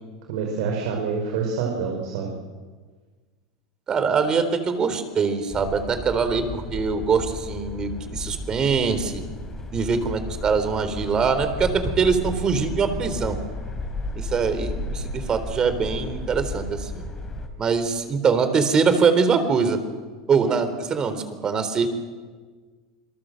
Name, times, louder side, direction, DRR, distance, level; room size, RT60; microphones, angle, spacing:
voice 1, 0.3-2.3, right 5 dB, 70° right, 1 dB, 5.1 m, -27 dB
voice 2, 3.9-9.2 9.7-13.4 14.2-17.0 17.6-19.8 20.3-21.9, right 5 dB, 30° right, 10 dB, 3.8 m, -23 dB
sound 1, 5.5-17.5, left 2 dB, 20° left, 4.7 m, -33 dB
28.0 x 22.5 x 7.8 m, 1.5 s
supercardioid pair, 120°, 3 cm